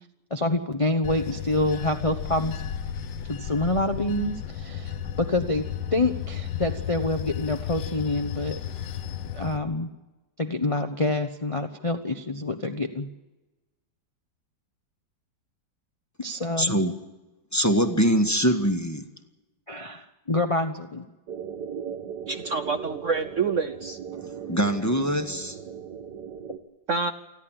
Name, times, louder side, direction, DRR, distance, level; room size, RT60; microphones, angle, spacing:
voice 1, 0.3-2.6 3.3-4.9 5.2-5.6 5.9-8.6 9.3-9.9 10.4-13.1 16.2-16.8 19.7-21.1, left 2 dB, 25° left, 6 dB, 0.8 m, -27 dB
Bell / Train, 1.0-9.6, left 8 dB, 85° left, 1.7 m, -34 dB
voice 2, 16.6-16.9 17.5-19.0 24.5-25.6, equal, 10° left, 6 dB, 1.3 m, -23 dB
sound 1, 21.3-26.6, right 8 dB, 70° right, 1.8 m, -37 dB
voice 3, 22.3-24.0 26.9-27.1, right 4 dB, 55° right, 8 dB, 1.0 m, -27 dB
29.0 x 11.0 x 8.9 m, 1.1 s
omnidirectional pair, 1.9 m